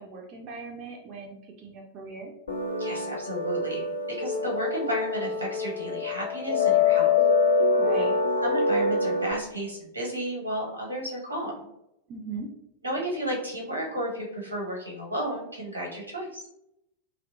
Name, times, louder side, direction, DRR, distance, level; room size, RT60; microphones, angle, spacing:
voice 1, 0.0-2.3 7.8-8.1 12.1-12.5, right 4 dB, 35° right, -1 dB, 0.4 m, -39 dB
sound 1, 2.5-9.3, left 4 dB, 75° left, 0.4 m, -25 dB
voice 2, 2.8-3.8 4.2-7.1 8.1-8.2 8.4-11.7 12.8-16.4, right 1 dB, 85° right, -3 dB, 1.0 m, -33 dB
2.7 x 2.1 x 2.5 m, 0.81 s
figure-of-eight pair, 90°, 0 cm